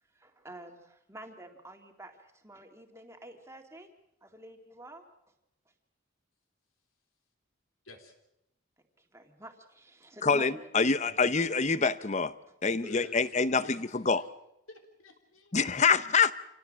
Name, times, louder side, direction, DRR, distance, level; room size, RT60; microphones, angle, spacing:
voice 1, 0.1-3.9 4.2-5.1 9.0-10.6 12.8-12.9, right 1 dB, 15° right, 4 dB, 2.1 m, -49 dB
voice 2, 7.8-8.2 11.1-11.2 12.8-14.2 14.7-15.6, left 2 dB, 75° left, 4 dB, 3.7 m, -51 dB
voice 3, 10.2-12.4 12.6-13.6 13.9-14.2 15.5-16.3, left 5 dB, 35° left, 15 dB, 0.7 m, -26 dB
27.0 x 17.5 x 7.4 m, 0.85 s
head